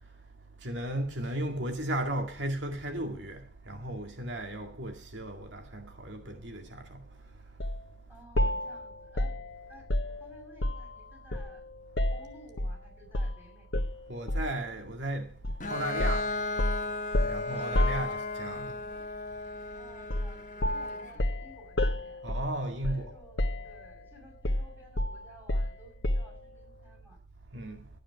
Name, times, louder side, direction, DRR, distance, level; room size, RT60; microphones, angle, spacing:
voice 1, 0.6-7.0 14.1-15.3 15.7-16.5 17.2-18.8 22.2-23.1 27.5-27.9, right 1 dB, 85° right, 2.1 m, -35 dB
sound 1, 7.6-7.8 8.4-11.0 11.3-12.8 13.1-13.4 13.7-14.6 15.4-15.6 16.0-18.6 20.1-20.4 20.6-23.1 23.4-24.0 24.4-26.4, left 1 dB, 85° left, 1.2 m, -31 dB
voice 2, 8.1-9.3 9.7-11.6 12.1-13.7 17.5-18.3 18.9-19.0 19.6-22.2 22.9-27.2, equal, 10° right, 6.0 m, -55 dB
Bowed string instrument, 15.6-21.2, left 2 dB, 45° left, 1.3 m, -36 dB
13.5 x 9.2 x 6.0 m
head